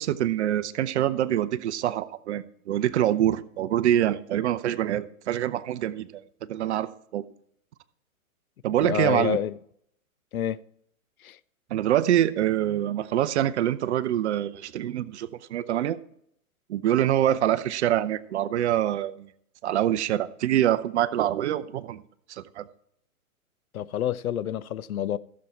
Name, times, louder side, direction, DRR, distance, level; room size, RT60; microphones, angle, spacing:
voice 1, 0.0-6.1 6.5-7.2 8.6-9.4 11.7-16.0 16.7-19.3 19.6-22.0 22.3-22.7, right 12 dB, 50° right, 0.7 m, -25 dB
voice 2, 8.8-9.6 10.3-10.6 11.2-11.4 23.7-25.2, left 10 dB, 70° left, 0.6 m, -28 dB
14.5 x 7.3 x 4.4 m
hypercardioid pair, 120°, 44 cm